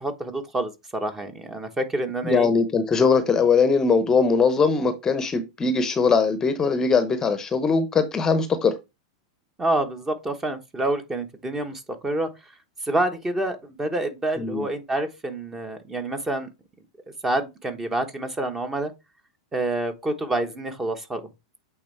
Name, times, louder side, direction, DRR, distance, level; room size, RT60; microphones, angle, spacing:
voice 1, 0.0-2.5 9.6-12.3 12.8-16.5 17.2-18.9 19.5-21.2, right 2 dB, 15° right, 1.1 m, -27 dB
voice 2, 2.2-8.7 14.4-14.7, left 5 dB, 20° left, 0.8 m, -21 dB
8.5 x 3.5 x 3.2 m
hypercardioid pair, 95°, 3 cm